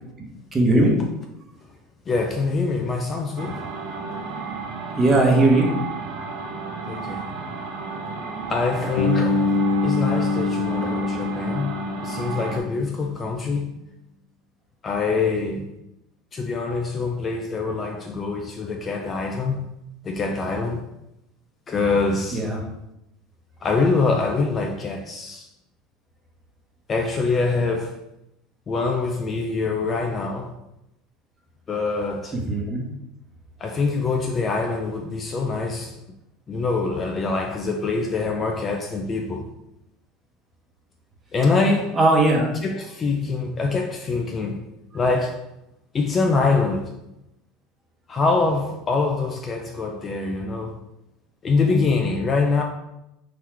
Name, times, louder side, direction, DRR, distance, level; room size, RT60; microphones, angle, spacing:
voice 1, 0.5-1.0 5.0-5.7 22.3-22.6 32.3-32.8 42.0-42.5, right 2 dB, 20° right, 1.0 m, -18 dB
voice 2, 2.1-3.6 6.9-7.3 8.5-9.5 9.8-11.7 12.0-13.7 14.8-15.6 16.3-19.7 20.0-20.8 21.7-22.4 23.6-25.5 26.9-27.9 28.7-30.5 31.7-32.4 33.6-35.9 36.5-39.5 41.3-42.0 42.6-44.6 44.9-45.4 45.9-46.9 48.1-50.8 51.4-52.6, left 4 dB, 25° left, 0.4 m, -24 dB
sound 1, 3.4-12.6, right 4 dB, 50° right, 0.7 m, -33 dB
Bass guitar, 9.0-12.9, left 3 dB, 80° left, 0.8 m, -24 dB
3.9 x 3.0 x 4.5 m
supercardioid pair, 145°, 0 cm